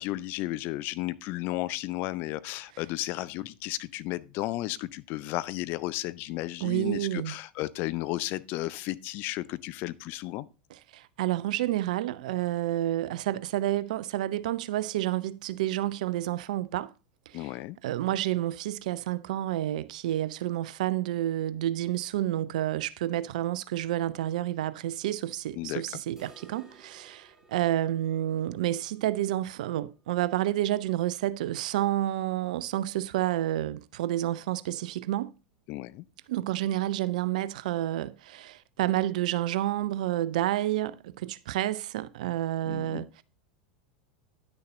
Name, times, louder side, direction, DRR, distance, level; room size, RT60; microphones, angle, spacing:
voice 1, 0.0-10.5 17.3-17.8 25.6-25.8 35.7-36.0 42.7-43.0, left 17 dB, 45° left, 0.6 m, -33 dB
voice 2, 6.6-7.4 10.7-16.9 17.3-17.5 17.8-35.3 36.3-43.2, right 13 dB, 60° right, 0.5 m, -29 dB
sound 1, 26.2-32.0 32.3-32.4 32.7-32.8 33.3-33.4 34.3-34.4, right 3 dB, 10° right, 2.5 m, -59 dB
10.5 x 6.6 x 3.9 m
figure-of-eight pair, 85°, 5 cm